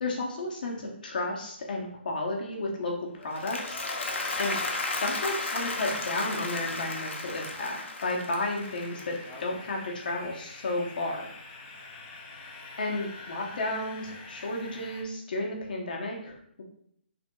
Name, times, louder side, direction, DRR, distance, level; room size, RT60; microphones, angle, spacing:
voice 1, 0.0-3.8 4.4-4.6 4.9-9.1 9.4-11.2 12.8-16.6, left 2 dB, 50° left, -1 dB, 0.9 m, -32 dB
Applause, 3.2-9.5, left 3 dB, 90° left, 0.8 m, -34 dB
sound 1, 8.5-15.0, left 3 dB, 15° left, 0.3 m, -46 dB
4.3 x 3.4 x 2.3 m, 0.68 s
hypercardioid pair, 175°, 6 cm